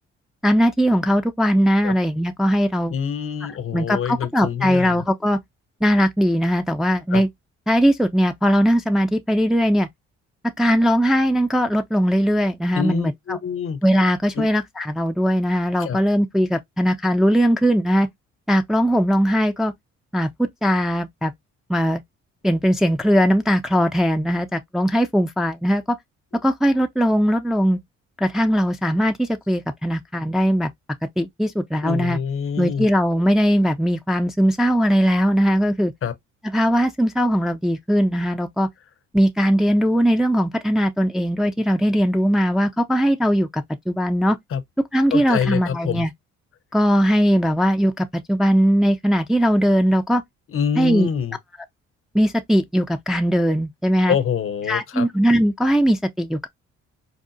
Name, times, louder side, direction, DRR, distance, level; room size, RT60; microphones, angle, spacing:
voice 1, 0.4-2.9 3.7-5.4 5.8-7.3 7.7-9.9 10.6-13.1 13.8-18.1 18.5-19.7 20.1-21.3 21.7-22.0 22.4-26.0 26.4-27.8 28.2-30.7 31.2-32.2 32.6-35.9 36.5-38.7 39.1-44.4 44.9-46.1 46.7-50.2 50.8-51.1 52.1-54.2 54.7-56.5, equal, ahead, 0.4 m, -19 dB
voice 2, 2.9-5.0 7.1-7.2 12.7-13.8 14.3-14.5 15.8-16.0 31.8-32.9 36.0-36.1 44.5-44.6 45.1-46.1 50.5-51.4 54.1-55.1, left 7 dB, 45° left, 0.7 m, -25 dB
4.8 x 2.0 x 2.6 m
supercardioid pair, 65°, 30 cm